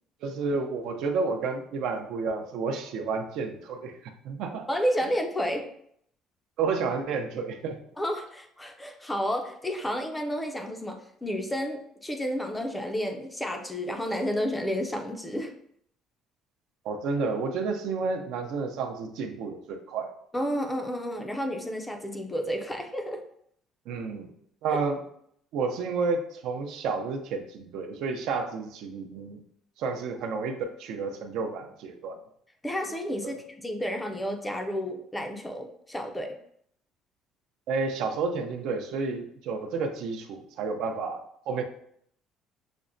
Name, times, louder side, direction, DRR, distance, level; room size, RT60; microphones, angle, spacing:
voice 1, 0.2-4.7 6.6-7.8 16.8-20.1 23.9-24.3 24.6-25.0 25.5-29.4 29.8-32.2 33.2-33.4 37.7-41.6, right 4 dB, 70° right, 5 dB, 0.5 m, -31 dB
voice 2, 4.7-5.7 8.0-15.5 20.3-23.2 24.7-24.8 32.6-36.3, equal, 10° left, 4 dB, 0.4 m, -31 dB
5.8 x 2.1 x 2.5 m, 0.67 s
cardioid pair, 150°, 0 cm